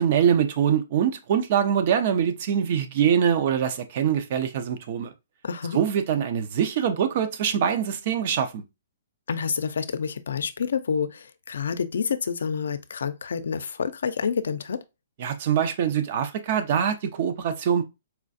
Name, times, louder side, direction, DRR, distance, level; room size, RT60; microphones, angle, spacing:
voice 1, 0.0-5.1 5.7-8.6 15.2-17.8, right 8 dB, 50° right, 0.6 m, -23 dB
voice 2, 5.4-5.8 9.3-14.8, left 6 dB, 80° left, 0.4 m, -28 dB
4.3 x 2.4 x 2.6 m
hypercardioid pair, 150°, 0 cm